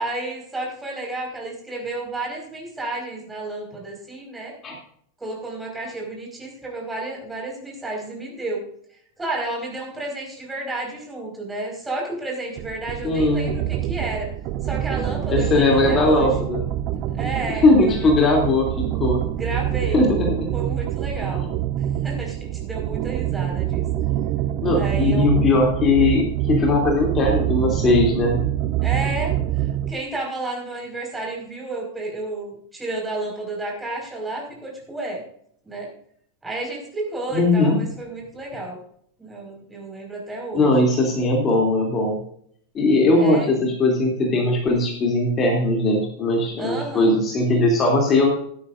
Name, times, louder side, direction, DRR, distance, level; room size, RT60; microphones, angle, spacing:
voice 1, 0.0-4.5 5.2-8.7 9.2-14.3 14.6-16.3 17.1-18.5 19.3-20.0 20.5-21.5 22.0-23.8 24.7-25.4 28.8-35.2 35.6-35.9 36.4-38.8 39.2-40.8 43.1-43.5 46.6-47.1, right 2 dB, 10° right, -1 dB, 5.0 m, -31 dB
sound 1, 12.6-30.0, right 12 dB, 40° right, 0.6 m, -25 dB
voice 2, 13.0-13.5 15.3-16.6 17.6-19.2 19.9-20.5 21.3-21.4 24.6-28.4 37.3-37.8 40.5-42.2 42.7-48.3, left 2 dB, 25° left, 0 dB, 2.8 m, -19 dB
16.0 x 12.0 x 2.6 m, 0.64 s
figure-of-eight pair, 90°, 0 cm